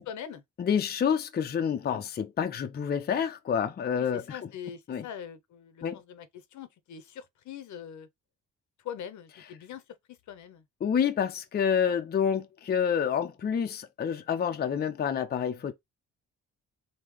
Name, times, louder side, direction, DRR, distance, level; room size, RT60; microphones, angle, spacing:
voice 1, 0.1-0.4 4.0-6.3 6.5-8.1 8.8-9.8 10.3-10.6 11.8-12.0, left 8 dB, 70° left, 0.8 m, -42 dB
voice 2, 0.6-4.5 4.9-5.1 5.8-6.0 10.8-15.7, left 7 dB, 35° left, 0.5 m, -28 dB
3.7 x 2.2 x 3.1 m
cardioid pair, 90°, 30 cm